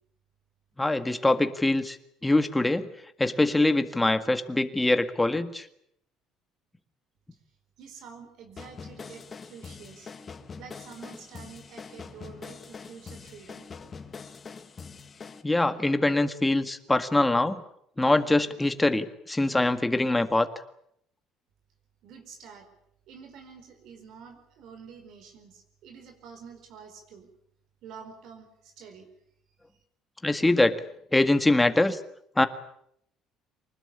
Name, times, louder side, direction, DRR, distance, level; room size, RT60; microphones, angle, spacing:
voice 1, 0.8-2.0 2.2-2.9 3.2-5.7 15.4-17.6 18.0-20.5 30.2-30.8 31.1-32.0 32.4-32.5, left 2 dB, 10° left, 9 dB, 1.8 m, -23 dB
voice 2, 7.8-10.1 10.6-13.6 22.0-22.7 23.1-27.3 27.8-29.1, right 6 dB, 65° right, 5 dB, 4.7 m, -48 dB
sound 1, 8.6-15.4, left 5 dB, 30° left, 1.8 m, -44 dB
24.5 x 20.0 x 8.7 m, 0.72 s
cardioid pair, 120°, 0 cm